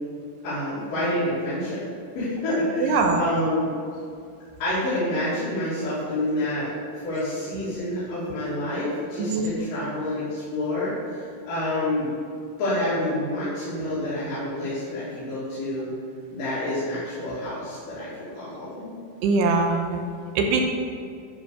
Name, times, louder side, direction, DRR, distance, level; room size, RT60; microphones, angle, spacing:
voice 1, 0.4-1.8 2.1-3.7 4.6-12.1 12.6-15.9 16.3-18.9, left 1 dB, 55° left, -13 dB, 4.2 m, -28 dB
voice 2, 2.8-3.2 9.3-9.5 19.2-20.0 20.4-20.6, right 3 dB, 85° right, 3 dB, 3.1 m, -21 dB
12.5 x 5.5 x 4.9 m, 2.4 s
omnidirectional pair, 4.7 m